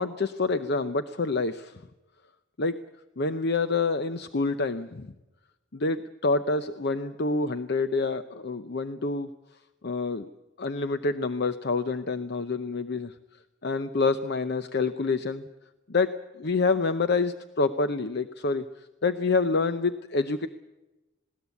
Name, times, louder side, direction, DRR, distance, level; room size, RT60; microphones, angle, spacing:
voice 1, 0.0-1.8 2.6-2.8 3.2-5.1 5.7-9.3 9.8-10.3 10.6-13.1 13.6-15.5 15.9-18.7 19.0-20.5, left 3 dB, 55° left, 11 dB, 0.7 m, -27 dB
20.0 x 17.5 x 8.3 m, 1.0 s
head